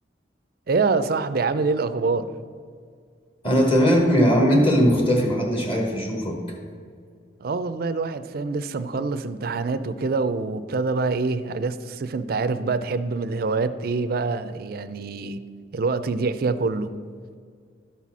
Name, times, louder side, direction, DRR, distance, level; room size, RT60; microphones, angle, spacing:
voice 1, 0.7-2.3 7.4-15.4 15.7-16.9, right 4 dB, 55° right, 12 dB, 0.4 m, -25 dB
voice 2, 3.4-6.4, equal, 30° left, 0 dB, 1.3 m, -19 dB
12.0 x 4.2 x 6.0 m, 2.1 s
head